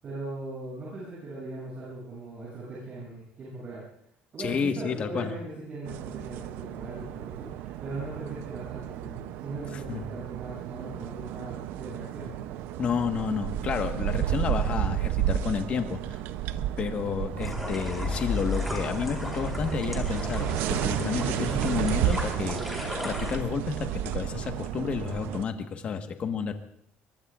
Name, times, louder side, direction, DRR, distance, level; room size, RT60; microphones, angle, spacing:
voice 1, 0.0-3.8 4.3-12.3, right 2 dB, 40° right, -7 dB, 7.9 m, -39 dB
voice 2, 4.4-5.3 9.7-10.1 12.8-16.2 16.8-26.5, left 6 dB, 40° left, 6 dB, 1.4 m, -31 dB
sound 1, 5.8-25.4, right 12 dB, 80° right, 0.6 m, -32 dB
sound 2, 17.4-23.4, left 2 dB, ahead, 4.3 m, -34 dB
24.0 x 22.5 x 2.5 m, 0.71 s
cardioid pair, 155°, 3 cm